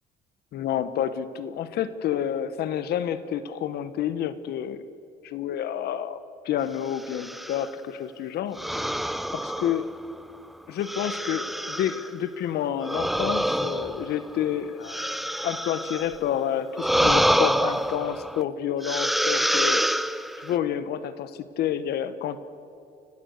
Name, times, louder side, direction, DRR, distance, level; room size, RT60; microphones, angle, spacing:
voice 1, 0.5-4.8 5.2-8.6 9.3-9.8 10.7-15.0 15.4-19.8 20.4-22.4, left 10 dB, 70° left, 13 dB, 1.3 m, -29 dB
sound 1, 7.0-7.7 8.6-10.2 10.8-12.1 12.8-16.2 16.7-18.4 18.8-20.6, equal, ahead, 0.6 m, -26 dB
29.5 x 16.0 x 6.7 m, 2.5 s
cardioid pair, 110°, 17 cm